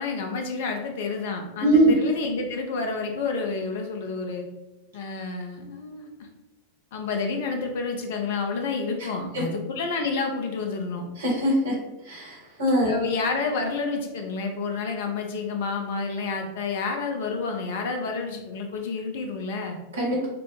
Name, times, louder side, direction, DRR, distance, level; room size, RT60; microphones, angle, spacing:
voice 1, 0.0-4.5 4.9-6.3 6.9-11.1 12.8-19.8, left 4 dB, 55° left, 4 dB, 0.6 m, -29 dB
voice 2, 1.6-1.9 11.2-11.7 12.1-12.9 19.9-20.3, right 1 dB, 65° right, -3 dB, 1.4 m, -21 dB
5.3 x 2.1 x 2.8 m, 0.99 s
figure-of-eight pair, 90°, 0 cm